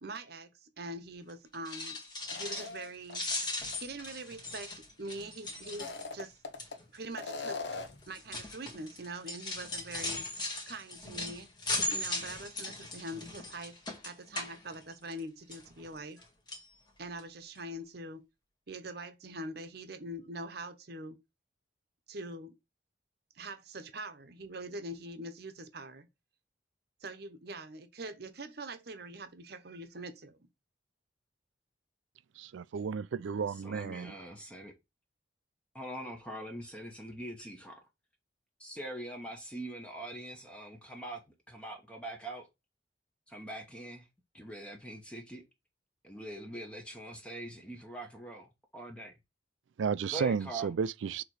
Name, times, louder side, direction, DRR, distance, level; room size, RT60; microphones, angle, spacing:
voice 1, 0.0-2.0 2.3-3.5 3.8-6.4 6.9-7.6 8.1-11.5 11.9-13.8 14.0-16.2 17.0-18.2 18.7-21.2 22.1-22.5 23.3-26.1 27.0-30.5, right 1 dB, 55° right, 0.9 m, -43 dB
sound 1, 1.5-2.8 3.1-6.2 6.6-6.9 7.7-15.2 15.5-16.2 16.5-16.7 17.2-17.3 17.5-17.6, left 2 dB, 25° left, 1.5 m, -38 dB
sound 2, 2.3-3.3 3.7-3.8 5.6-6.8 7.2-8.1, left 4 dB, 65° left, 0.9 m, -40 dB
voice 2, 32.4-34.1 49.8-51.2, right 6 dB, 80° right, 0.4 m, -33 dB
voice 3, 33.6-34.7 35.7-37.8 38.6-41.2 41.5-42.5 43.3-44.1 44.3-45.4 46.0-49.2 50.1-50.7, right 1 dB, 5° left, 1.0 m, -43 dB
6.6 x 3.0 x 4.7 m
head